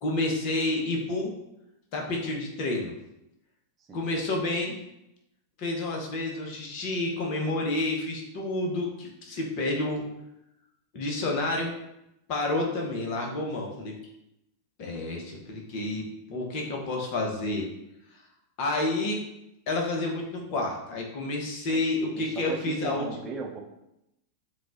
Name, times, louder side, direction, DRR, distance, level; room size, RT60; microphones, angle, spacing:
voice 1, 0.0-1.3 1.9-2.9 3.9-4.8 5.6-10.1 10.9-11.8 12.3-13.9 14.8-17.6 18.6-19.2 19.7-23.0, left 2 dB, 45° left, 0 dB, 1.1 m, -29 dB
voice 2, 22.1-23.6, right 4 dB, 25° right, 1 dB, 0.8 m, -37 dB
7.2 x 2.4 x 2.6 m, 0.85 s
figure-of-eight pair, 90°, 0 cm